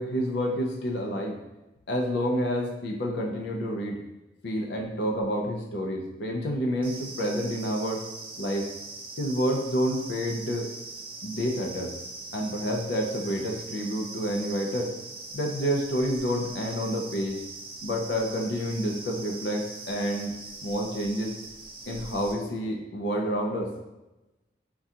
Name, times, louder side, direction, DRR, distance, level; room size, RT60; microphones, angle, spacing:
voice 1, 0.0-1.4 1.9-4.0 4.4-8.0 8.4-8.7 9.2-10.7 11.2-11.9 12.3-14.9 15.3-17.4 17.8-20.3 20.6-21.3 21.9-23.7, equal, 75° left, 1 dB, 0.4 m, -29 dB
sound 1, 6.8-22.3, right 3 dB, 30° right, 0.5 m, -41 dB
3.6 x 2.2 x 2.7 m, 1.0 s
head